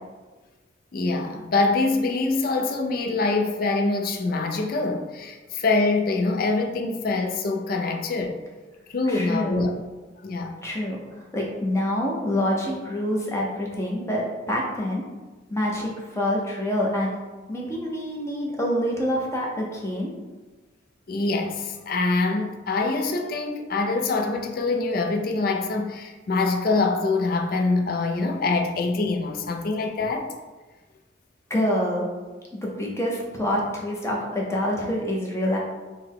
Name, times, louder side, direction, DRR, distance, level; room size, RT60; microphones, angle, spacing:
voice 1, 0.9-8.4 8.9-9.7 10.2-10.5 21.1-30.3, left 3 dB, 50° left, 0.4 m, -24 dB
voice 2, 9.1-9.6 10.6-15.0 15.5-17.1 17.5-20.1 31.5-32.1 32.6-35.6, left 1 dB, 15° left, 0.7 m, -26 dB
3.9 x 2.2 x 4.6 m
head